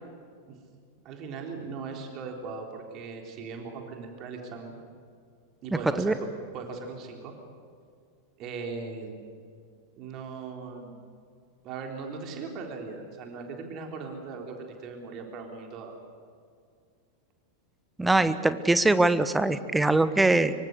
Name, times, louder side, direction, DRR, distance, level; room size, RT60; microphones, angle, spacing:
voice 1, 1.0-4.8 5.6-6.1 6.5-7.3 8.4-9.2 10.0-11.0 11.6-15.9, right 4 dB, 35° right, 2 dB, 3.8 m, -39 dB
voice 2, 18.0-20.5, right 2 dB, 5° right, 13 dB, 1.2 m, -22 dB
25.0 x 24.0 x 6.7 m, 2.2 s
figure-of-eight pair, 90°, 0 cm